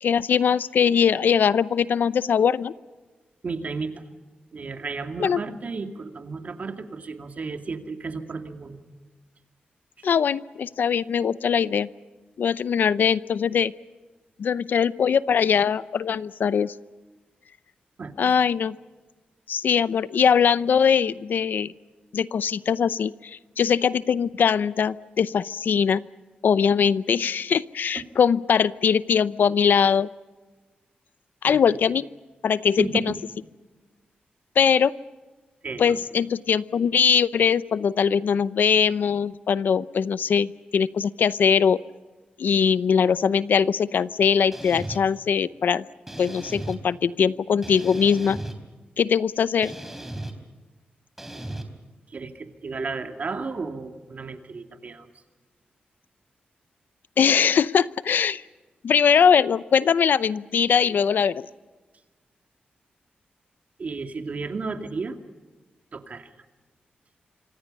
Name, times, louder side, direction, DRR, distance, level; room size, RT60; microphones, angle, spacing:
voice 1, 0.0-2.7 5.2-5.4 10.0-11.9 12.4-13.7 14.4-16.7 18.2-18.7 19.5-21.7 22.1-26.0 26.4-30.1 31.4-32.1 32.4-33.1 34.6-34.9 35.8-41.8 42.4-45.9 46.2-48.4 49.0-49.7 57.2-58.4 58.8-61.5, left 7 dB, 75° left, 16 dB, 0.7 m, -21 dB
voice 2, 3.4-4.0 4.5-8.8 10.0-10.1 18.0-18.3 27.9-28.0 31.5-31.6 32.8-33.2 35.6-36.0 52.1-55.1 63.8-65.2 65.9-66.3, right 4 dB, 50° right, 5 dB, 2.4 m, -33 dB
sound 1, 44.5-45.0 46.1-46.8 47.6-48.6 49.6-50.3 51.2-51.6, right 1 dB, 10° right, 3.5 m, -36 dB
26.5 x 25.5 x 5.5 m, 1.3 s
wide cardioid pair, 105°, 3 cm